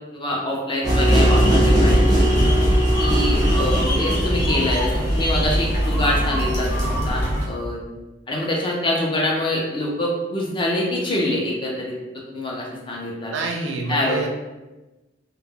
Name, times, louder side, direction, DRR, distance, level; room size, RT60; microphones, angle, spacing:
voice 1, 0.1-2.2 3.0-7.8 8.3-11.9 12.3-13.3 13.9-14.3, left 1 dB, 25° left, -2 dB, 0.5 m, -25 dB
sound 1, 0.8-7.5, equal, 50° left, 0.8 m, -23 dB
sound 2, 0.8-5.6, equal, 20° right, 0.6 m, -19 dB
voice 2, 13.3-14.3, right 3 dB, 75° right, 1 dB, 0.4 m, -27 dB
2.1 x 2.1 x 3.5 m, 1.1 s
head